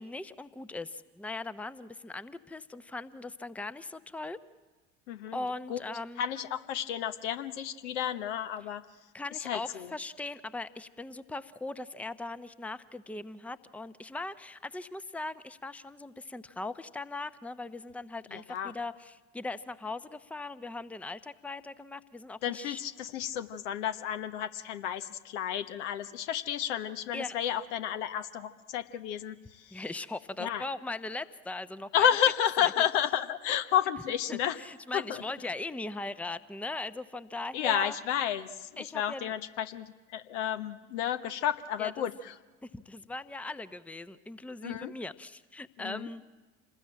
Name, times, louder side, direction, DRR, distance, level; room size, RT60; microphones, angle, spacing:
voice 1, 0.0-4.4 5.3-6.2 9.1-22.8 27.1-27.3 29.7-32.1 32.6-32.7 34.3-38.0 38.8-39.3 41.8-42.1 42.6-46.2, left 2 dB, 5° left, 14 dB, 0.9 m, -39 dB
voice 2, 5.1-5.4 5.7-5.8 6.2-8.8 9.4-9.9 18.3-18.7 22.4-29.8 30.4-30.6 31.9-34.6 34.9-35.2 37.5-42.3 44.6-44.9 45.8-46.1, left 10 dB, 65° left, 9 dB, 1.3 m, -31 dB
27.5 x 20.0 x 8.8 m, 1.3 s
figure-of-eight pair, 65°, 37 cm